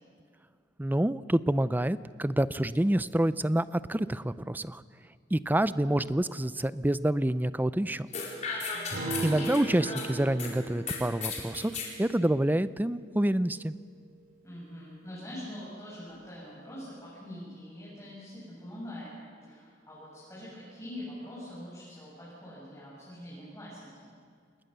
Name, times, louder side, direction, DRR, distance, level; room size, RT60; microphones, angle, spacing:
voice 1, 0.8-4.8 5.3-8.1 9.2-11.7 12.0-13.7, right 1 dB, 10° right, 15 dB, 0.5 m, -27 dB
sound 1, 8.1-10.5 10.9-11.9, left 5 dB, 40° left, 4.8 m, -36 dB
voice 2, 8.7-9.4 14.4-19.1 19.4-24.1, left 1 dB, 15° left, -9 dB, 8.0 m, -44 dB
Acoustic guitar, 8.9-13.6, right 3 dB, 55° right, 5.6 m, -39 dB
28.5 x 20.0 x 6.9 m, 2.1 s
head